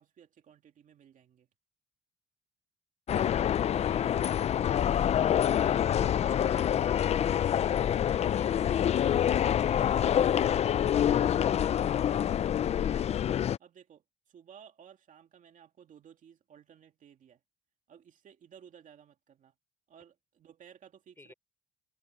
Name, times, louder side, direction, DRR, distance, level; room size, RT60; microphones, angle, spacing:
voice 1, 0.0-1.5 3.5-3.9 5.8-6.1 11.3-13.2 13.6-17.4 17.9-19.5 19.9-21.3, right 8 dB, 50° right, 2.4 m, -57 dB
sound 1, 3.1-13.6, left 10 dB, 40° left, 0.4 m, -26 dB
voice 2, 21.2-21.3, left 2 dB, 15° left, 5.6 m, -54 dB
cardioid pair, 110°, 17 cm